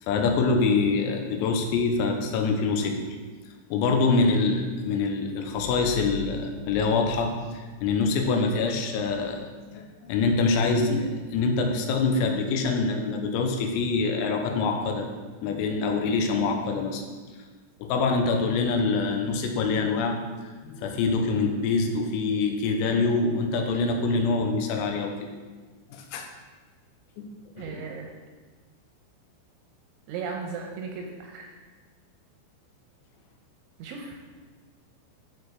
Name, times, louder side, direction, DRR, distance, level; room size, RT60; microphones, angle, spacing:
voice 1, 0.1-3.0 3.7-15.1 15.4-17.0 17.8-20.2 20.7-25.2 25.9-26.3 27.2-27.3 27.6-27.8, left 4 dB, 90° left, 3 dB, 3.6 m, -25 dB
voice 2, 27.6-28.1 30.1-31.5 33.8-34.2, right 5 dB, 80° right, 1 dB, 2.8 m, -36 dB
11.5 x 4.7 x 4.8 m, 1.4 s
omnidirectional pair, 6.0 m